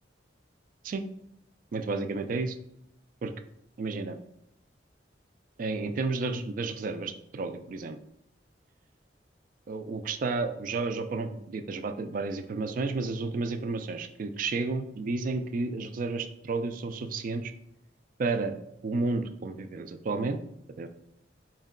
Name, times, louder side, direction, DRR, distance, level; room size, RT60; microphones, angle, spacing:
voice 1, 1.7-2.6 3.2-3.3 3.8-4.2 5.6-8.0 9.7-17.5 18.2-18.6 18.8-20.4 20.8-20.9, right 3 dB, 50° right, 9 dB, 0.3 m, -31 dB
4.5 x 2.2 x 3.6 m, 0.77 s
head